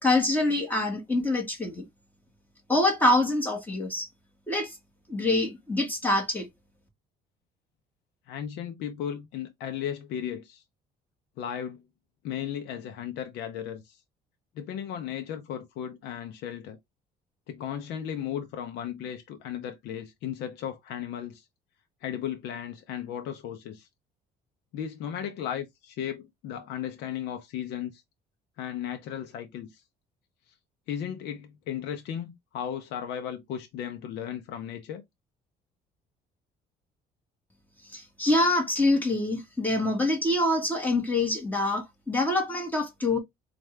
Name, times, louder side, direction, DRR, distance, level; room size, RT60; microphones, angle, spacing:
voice 1, 0.0-1.8 2.7-4.1 4.5-4.7 5.1-6.5 37.9-43.2, left 2 dB, 10° left, 1.8 m, -25 dB
voice 2, 8.3-10.6 11.4-11.8 12.2-14.0 14.6-16.8 17.5-21.4 22.0-23.9 24.7-28.0 28.6-29.8 30.9-35.0, left 9 dB, 80° left, 0.7 m, -35 dB
4.2 x 2.5 x 3.3 m
cardioid pair, 110°, 17 cm